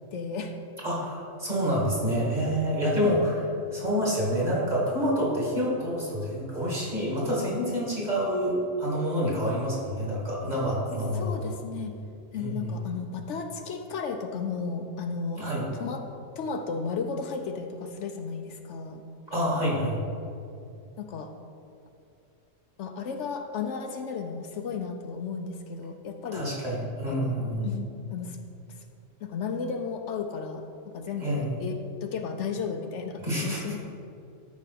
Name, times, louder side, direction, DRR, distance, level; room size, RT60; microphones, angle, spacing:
voice 1, 0.1-0.5 3.0-3.2 11.1-11.9 12.3-16.0 16.4-19.0 21.0-21.3 22.8-26.5 27.1-28.4 29.2-30.6 30.9-33.8, left 5 dB, 75° left, 5 dB, 0.9 m, -34 dB
voice 2, 0.8-3.5 3.7-11.3 12.3-12.8 15.4-15.7 19.3-20.0 26.3-27.7 31.2-31.6 33.2-33.6, equal, 35° right, -5 dB, 2.3 m, -27 dB
13.0 x 5.1 x 4.2 m, 2.5 s
omnidirectional pair, 1.3 m